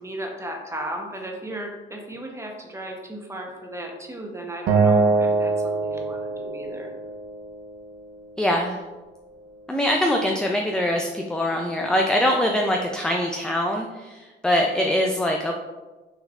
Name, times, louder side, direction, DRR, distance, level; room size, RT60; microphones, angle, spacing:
voice 1, 0.0-6.9, right 1 dB, 15° right, 1 dB, 0.9 m, -35 dB
Acoustic guitar, 4.7-7.9, right 3 dB, 75° right, 0.6 m, -23 dB
voice 2, 8.4-8.8 9.7-15.5, left 1 dB, 5° left, 1 dB, 0.4 m, -23 dB
6.2 x 3.1 x 2.5 m, 1.2 s
cardioid pair, 90°, 20 cm